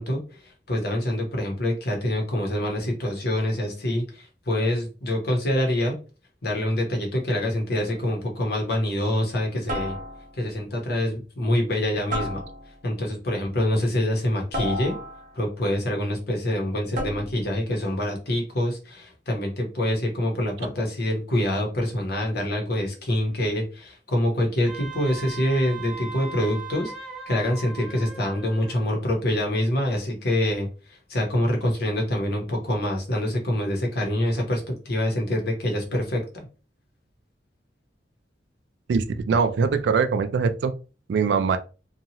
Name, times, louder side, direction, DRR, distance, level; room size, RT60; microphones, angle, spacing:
voice 1, 0.0-6.0 6.4-10.0 10.4-12.4 12.8-14.9 15.3-26.9 27.3-36.5, left 1 dB, 60° left, 1.0 m, -26 dB
sound 1, 7.9-8.2 9.7-10.5 12.1-12.9 14.5-15.5 16.9-17.5, equal, 45° right, 0.8 m, -32 dB
Wind instrument woodwind instrument, 24.7-28.9, right 4 dB, 5° right, 0.5 m, -39 dB
voice 2, 38.9-40.7 41.1-41.6, right 5 dB, 65° right, 0.3 m, -22 dB
2.8 x 2.3 x 2.8 m
head